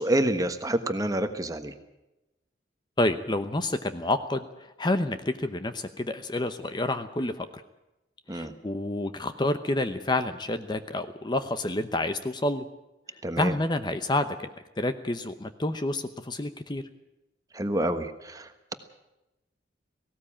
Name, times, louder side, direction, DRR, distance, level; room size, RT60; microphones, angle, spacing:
voice 1, 0.0-1.7 8.3-8.5 13.2-13.5 17.5-18.7, right 1 dB, 20° right, 8 dB, 1.3 m, -28 dB
voice 2, 3.0-7.6 8.3-12.7 13.4-14.4 14.8-16.8, left 1 dB, 25° left, 10 dB, 0.8 m, -29 dB
18.0 x 17.0 x 8.7 m, 0.95 s
head